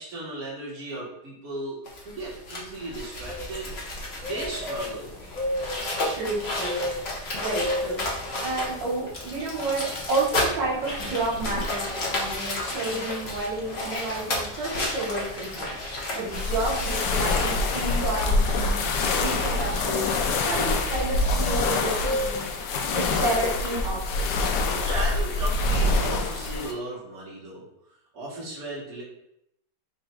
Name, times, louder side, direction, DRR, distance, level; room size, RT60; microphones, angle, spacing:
voice 1, 0.0-1.8 2.0-3.7 4.2-5.2 24.8-27.6 28.1-29.0, right 2 dB, 55° right, -6 dB, 1.8 m, -35 dB
sound 1, 1.9-21.3, left 2 dB, 45° left, 1.0 m, -33 dB
sound 2, 3.2-22.4, left 1 dB, 5° left, 0.4 m, -38 dB
voice 2, 6.0-15.7 16.1-20.1 20.4-22.4 22.9-24.3, right 2 dB, 85° right, -5 dB, 2.0 m, -31 dB
sound 3, 16.3-26.7, left 3 dB, 75° left, 1.2 m, -25 dB
4.3 x 2.5 x 4.4 m, 0.76 s
omnidirectional pair, 1.9 m